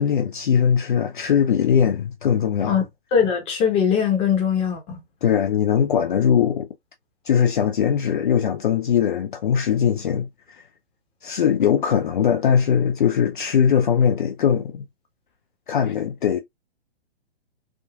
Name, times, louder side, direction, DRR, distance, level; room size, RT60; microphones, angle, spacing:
voice 1, 0.0-2.8 5.2-6.7 7.2-10.6 11.2-14.8 15.7-16.4, left 8 dB, 50° left, 0.5 m, -20 dB
voice 2, 3.1-5.0, left 7 dB, 20° left, 0.9 m, -21 dB
3.6 x 2.4 x 2.3 m
figure-of-eight pair, 120°, 32 cm